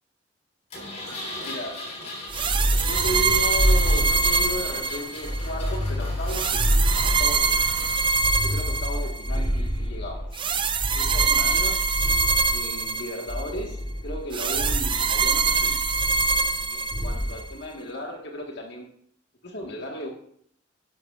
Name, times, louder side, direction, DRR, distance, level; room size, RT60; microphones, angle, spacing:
Engine, 0.7-8.2, left 1 dB, 35° left, 3.5 m, -39 dB
voice 1, 1.4-2.0 2.8-6.7 7.0-7.6 8.4-10.5 10.8-11.9 12.5-15.8 16.6-18.9 19.4-20.1, left 1 dB, 60° left, 1 dB, 1.5 m, -35 dB
sound 1, 2.3-4.7 5.2-7.6 8.1-10.3 10.8-12.6 13.3-14.2 14.5-15.0 15.9-16.6 16.9-17.4, equal, 10° right, 4.7 m, -27 dB
sound 2, 2.3-5.5 6.3-9.4 10.3-13.5 14.3-17.4, right 4 dB, 25° right, 0.5 m, -24 dB
11.5 x 10.5 x 2.4 m, 0.64 s
head